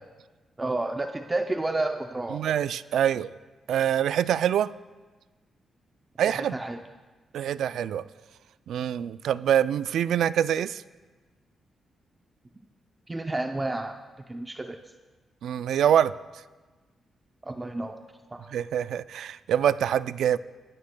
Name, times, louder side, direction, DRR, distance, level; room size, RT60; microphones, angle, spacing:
voice 1, 0.6-2.4 6.3-6.8 13.1-14.0 14.3-14.8 17.4-18.0 18.3-18.5, right 2 dB, 15° right, 5 dB, 0.5 m, -30 dB
voice 2, 2.3-3.3 3.7-4.7 6.2-6.6 7.3-8.1 8.7-10.8 15.4-16.1 18.5-20.4, right 9 dB, 85° right, 16 dB, 0.3 m, -25 dB
23.5 x 13.0 x 2.2 m, 1.3 s
cardioid pair, 130°, 0 cm